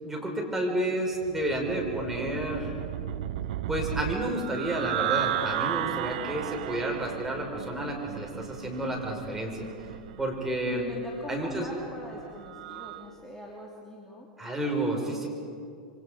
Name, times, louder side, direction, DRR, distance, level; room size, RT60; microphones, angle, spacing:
voice 1, 0.0-2.7 3.7-9.7 10.2-10.8 11.3-11.7 14.4-15.3, right 1 dB, 10° right, 0 dB, 5.7 m, -30 dB
sound 1, 1.2-13.1, right 13 dB, 65° right, 0.7 m, -35 dB
voice 2, 10.7-14.3, left 1 dB, 10° left, -3 dB, 3.2 m, -41 dB
27.0 x 25.5 x 5.3 m, 2.5 s
hypercardioid pair, 95°, 4 cm